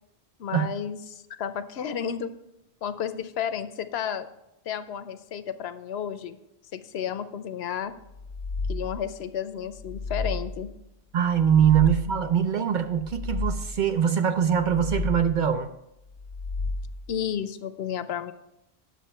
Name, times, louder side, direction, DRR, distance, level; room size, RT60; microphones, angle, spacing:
voice 1, 0.4-2.3 2.8-4.3 4.7-6.4 6.7-7.9 8.7-10.7 17.1-18.3, left 8 dB, 75° left, 12 dB, 0.8 m, -32 dB
sound 1, 8.1-9.2 9.7-10.8 11.3-12.4 12.9-14.0 14.5-15.5 16.1-17.2, left 3 dB, 45° left, 0.8 m, -33 dB
voice 2, 11.1-15.7, right 8 dB, 60° right, 8 dB, 0.6 m, -22 dB
10.0 x 6.8 x 4.3 m, 0.87 s
omnidirectional pair, 1.1 m